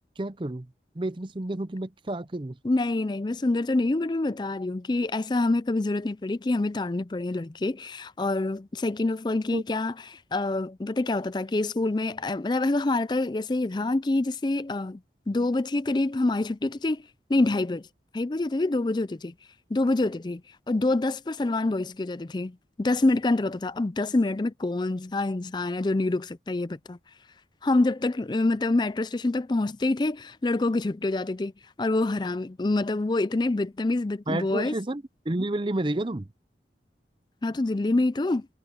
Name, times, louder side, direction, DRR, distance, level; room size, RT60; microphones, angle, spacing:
voice 1, 0.2-2.6 9.5-9.6 34.3-36.3, right 1 dB, 30° right, 0.6 m, -30 dB
voice 2, 2.6-15.0 15.3-17.9 18.1-19.3 19.7-20.4 20.7-27.0 27.6-31.5 31.8-34.7 37.4-38.5, left 2 dB, 25° left, 0.4 m, -26 dB
head